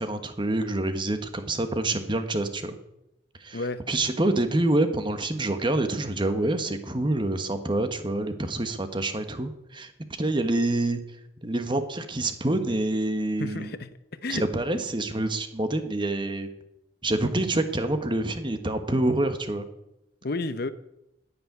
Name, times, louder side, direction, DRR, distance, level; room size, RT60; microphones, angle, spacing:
voice 1, 0.0-2.8 3.4-3.6 3.9-9.9 10.2-11.0 11.4-13.7 14.3-16.5 17.0-19.7, right 2 dB, 25° right, 1.4 m, -27 dB
voice 2, 13.4-14.4 20.2-20.7, left 3 dB, 60° left, 0.8 m, -31 dB
10.0 x 10.0 x 9.5 m
head